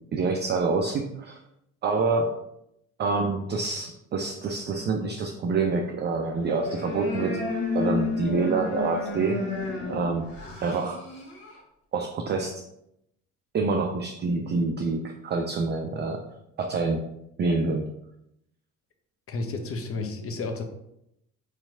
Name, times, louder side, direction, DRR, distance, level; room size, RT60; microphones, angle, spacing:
voice 1, 0.1-1.4 1.8-2.3 3.0-7.4 7.7-9.4 9.9-10.3 10.6-11.0 11.9-12.5 13.5-16.2 16.6-17.0 17.4-17.8, right 4 dB, 25° right, 3 dB, 0.5 m, -26 dB
sound 1, 6.4-11.6, left 3 dB, 55° left, 1.4 m, -31 dB
voice 2, 19.3-20.6, left 3 dB, 30° left, 6 dB, 0.8 m, -31 dB
4.6 x 4.3 x 2.6 m, 0.79 s
figure-of-eight pair, 55°, 44 cm